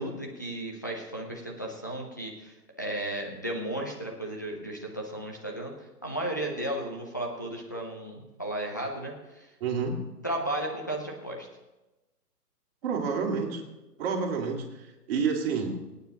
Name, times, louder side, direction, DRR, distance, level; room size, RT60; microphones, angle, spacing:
voice 1, 0.0-9.5 10.2-11.5, right 1 dB, 15° left, -1 dB, 0.4 m, -34 dB
voice 2, 9.6-10.0 12.8-13.6 14.0-15.8, right 5 dB, 35° right, 0 dB, 2.4 m, -29 dB
25.0 x 9.1 x 2.9 m, 1.0 s
hypercardioid pair, 140°, 48 cm